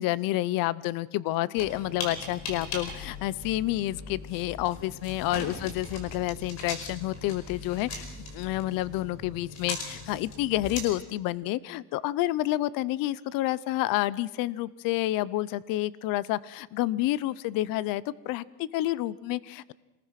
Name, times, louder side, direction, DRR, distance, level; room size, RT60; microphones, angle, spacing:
voice 1, 0.0-8.1 8.3-19.7, left 16 dB, 55° left, 20 dB, 0.7 m, -29 dB
sound 1, 1.6-10.8, left 3 dB, 40° left, 5.2 m, -39 dB
26.5 x 20.0 x 5.9 m, 1.0 s
cardioid pair, 155°, 41 cm